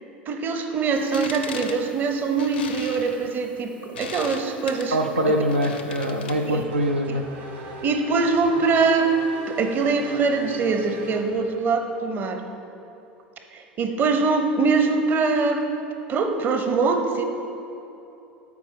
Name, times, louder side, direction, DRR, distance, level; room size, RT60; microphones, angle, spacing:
voice 1, 0.3-5.0 6.5-6.6 7.1-7.2 7.8-9.1 9.5-12.4 13.5-15.6 16.1-17.2, right 4 dB, 35° right, 5 dB, 0.8 m, -23 dB
sound 1, 1.0-6.6, left 6 dB, 70° left, 0.6 m, -39 dB
voice 2, 4.9-7.2, right 1 dB, 85° right, 3 dB, 0.4 m, -23 dB
Race car auto racing / Accelerating revving vroom, 6.3-11.7, right 1 dB, 50° right, 1.5 m, -40 dB
12.5 x 4.6 x 4.5 m, 2.9 s
figure-of-eight pair, 75°, 6 cm